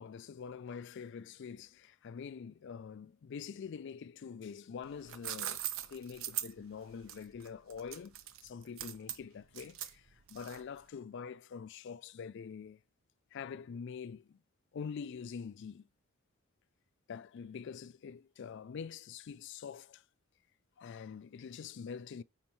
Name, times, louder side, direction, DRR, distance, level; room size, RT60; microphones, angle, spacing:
voice 1, 0.0-5.6 5.9-8.1 8.4-12.8 13.3-14.4 14.7-15.9 17.1-20.0 20.8-22.2, left 6 dB, 55° left, 0.3 m, -45 dB
sound 1, 4.8-10.8, right 12 dB, 75° right, 0.7 m, -41 dB
8.9 x 4.3 x 3.1 m
head